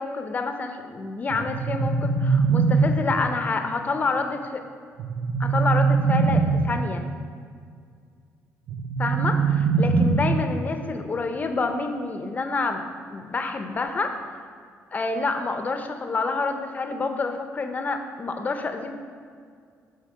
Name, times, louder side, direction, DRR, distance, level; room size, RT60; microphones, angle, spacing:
voice 1, 0.0-4.6 5.4-7.0 9.0-12.8 13.1-14.4 14.9-18.9, left 3 dB, 30° left, 6 dB, 0.5 m, -28 dB
sound 1, 1.3-3.3 5.0-6.9 8.7-10.7, right 4 dB, 60° right, 0.4 m, -22 dB
6.6 x 4.0 x 5.2 m, 2.2 s
cardioid pair, 125°, 6 cm